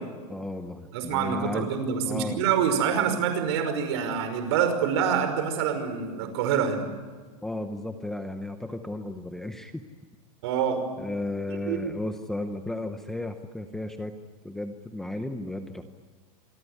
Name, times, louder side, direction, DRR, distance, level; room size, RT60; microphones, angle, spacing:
voice 1, 0.3-2.4 7.4-9.8 11.0-14.1 14.4-15.8, left 1 dB, ahead, 6 dB, 0.8 m, -34 dB
voice 2, 0.9-6.8 10.4-10.8 11.7-11.9, right 7 dB, 45° right, 8 dB, 5.5 m, -26 dB
27.5 x 25.0 x 8.2 m, 1.5 s
supercardioid pair, 180°, 19 cm